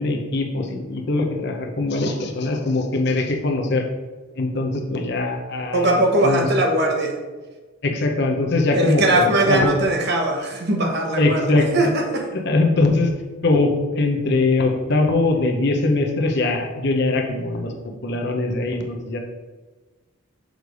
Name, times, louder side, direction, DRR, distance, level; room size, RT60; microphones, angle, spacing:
voice 1, 0.0-3.8 4.4-6.5 7.8-9.8 11.2-11.9 12.3-13.1 13.4-17.7 18.0-19.2, left 2 dB, 50° left, 3 dB, 0.8 m, -21 dB
voice 2, 5.7-7.1 8.7-12.2, right 1 dB, 50° right, 1 dB, 1.0 m, -20 dB
6.4 x 3.3 x 5.2 m, 1.3 s
head